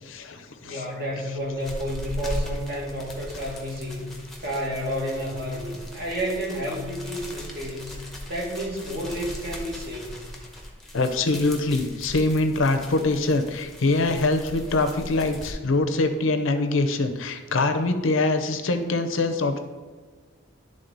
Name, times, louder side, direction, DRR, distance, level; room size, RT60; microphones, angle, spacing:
voice 1, 0.0-0.8 10.9-19.6, left 2 dB, 70° left, 7 dB, 0.6 m, -24 dB
voice 2, 0.6-4.1 4.4-10.2, equal, 50° right, -2 dB, 1.8 m, -31 dB
sound 1, 1.3-15.5, left 1 dB, ahead, 0.8 m, -38 dB
10.5 x 3.6 x 3.9 m, 1.4 s
head